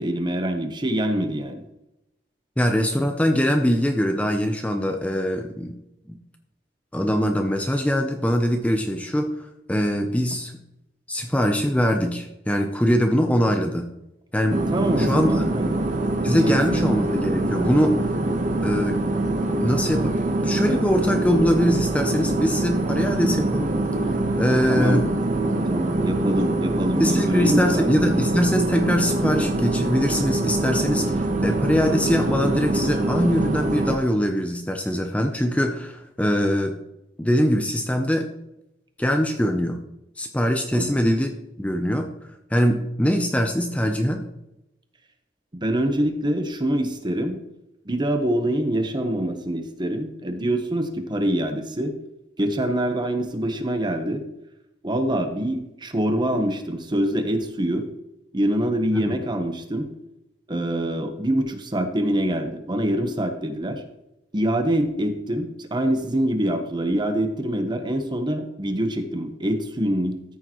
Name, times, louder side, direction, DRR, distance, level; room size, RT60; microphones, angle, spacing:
voice 1, 0.0-1.6 14.7-15.9 16.4-16.8 24.7-25.1 25.7-27.9 40.7-41.0 45.5-47.4 47.8-52.0 52.4-54.2 54.8-57.9 58.3-59.9 60.5-63.8 64.3-70.4, right 1 dB, 25° right, 7 dB, 1.0 m, -25 dB
voice 2, 2.6-5.7 6.9-10.5 11.1-13.9 14.3-14.6 15.0-15.5 16.2-18.0 18.6-19.0 19.6-20.1 20.4-23.8 24.4-25.1 27.0-36.7 37.2-38.3 39.0-39.8 40.2-41.3 41.6-42.1 42.5-44.2 58.9-59.0, equal, 10° left, 4 dB, 0.6 m, -22 dB
sound 1, 14.5-34.0, right 2 dB, 45° right, 1.1 m, -24 dB
13.5 x 6.5 x 3.0 m, 0.87 s
head